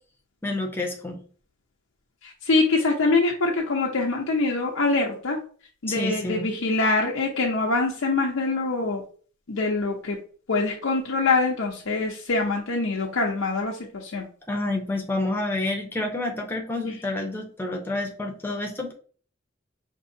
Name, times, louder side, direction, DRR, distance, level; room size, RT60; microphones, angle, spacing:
voice 1, 0.4-1.2 5.9-6.5 14.5-18.9, left 2 dB, 10° left, 1 dB, 0.8 m, -29 dB
voice 2, 2.2-5.4 5.8-9.0 9.5-10.2 10.5-14.3, left 3 dB, 85° left, -1 dB, 0.7 m, -24 dB
5.3 x 2.7 x 2.7 m, 0.43 s
head